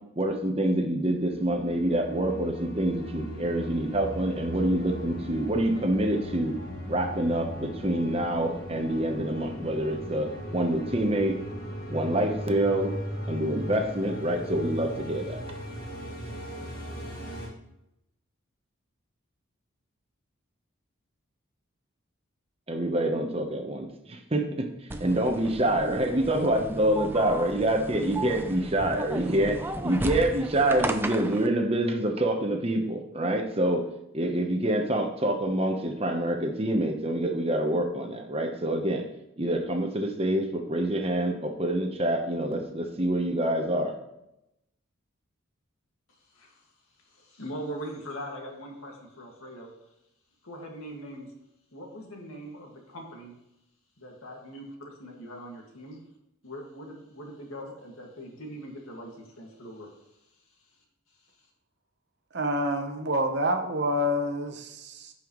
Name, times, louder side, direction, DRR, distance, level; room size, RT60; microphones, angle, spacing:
voice 1, 0.2-6.6 6.9-11.4 11.9-12.9 13.3-15.4 22.7-33.8 34.1-39.1 39.4-44.0, right 1 dB, 30° right, 4 dB, 1.0 m, -26 dB
sound 1, 1.2-17.5, equal, 45° left, 1.9 m, -38 dB
sound 2, 24.9-31.5, right 2 dB, 10° right, 0.5 m, -35 dB
voice 2, 47.0-49.7 50.4-51.3 51.7-53.3 54.0-54.6 55.0-56.0 56.4-59.9, equal, 85° left, 0 dB, 2.1 m, -41 dB
voice 3, 62.3-65.1, equal, 55° right, 5 dB, 1.0 m, -27 dB
15.0 x 5.6 x 3.1 m, 0.86 s
head